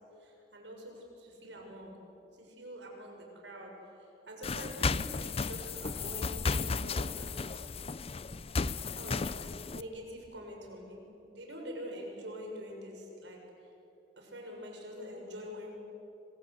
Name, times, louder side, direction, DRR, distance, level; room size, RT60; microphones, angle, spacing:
voice 1, 0.2-1.9 2.4-7.7 9.0-13.7 14.2-15.8, equal, 80° right, 1 dB, 6.8 m, -45 dB
sound 1, 4.4-9.8, left 4 dB, 35° left, 0.5 m, -34 dB
26.0 x 25.5 x 8.4 m, 2.9 s
head